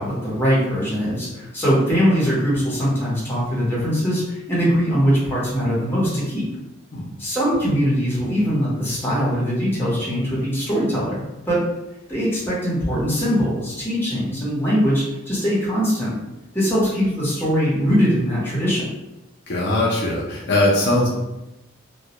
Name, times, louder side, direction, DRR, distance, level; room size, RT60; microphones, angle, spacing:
voice 1, 0.0-6.5 7.2-11.2 11.5-11.6 12.1-16.2 16.5-18.8, equal, 10° left, -8 dB, 0.8 m, -21 dB
voice 2, 19.5-21.1, left 1 dB, 55° left, -4 dB, 0.5 m, -20 dB
2.2 x 2.0 x 2.8 m, 0.97 s
head